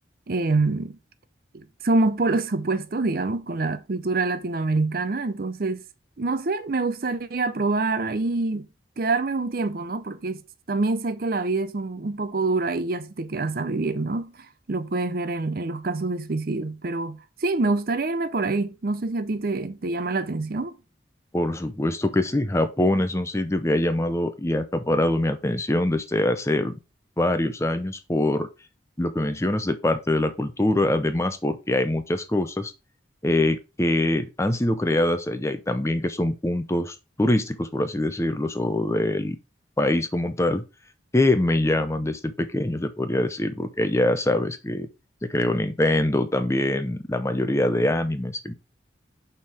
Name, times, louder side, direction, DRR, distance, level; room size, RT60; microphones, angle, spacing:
voice 1, 0.3-1.0 1.5-5.8 6.2-8.7 9.0-10.4 10.7-14.3 14.7-20.7, right 3 dB, 50° right, 0.6 m, -26 dB
voice 2, 21.3-26.8 27.2-28.5 29.0-32.7 33.2-39.4 39.8-40.6 41.1-44.9 45.2-48.5, left 1 dB, 15° left, 0.6 m, -24 dB
5.5 x 4.5 x 4.8 m
head